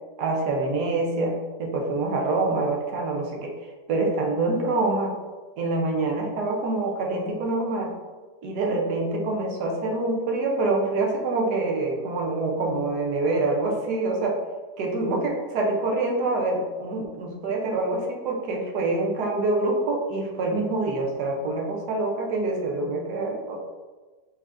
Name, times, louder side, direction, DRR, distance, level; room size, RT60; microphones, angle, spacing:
voice 1, 0.2-3.5 3.9-5.1 5.6-7.9 8.4-14.4 14.8-23.6, right 2 dB, 70° right, 1 dB, 1.2 m, -26 dB
4.5 x 4.1 x 2.5 m, 1.3 s
omnidirectional pair, 1.9 m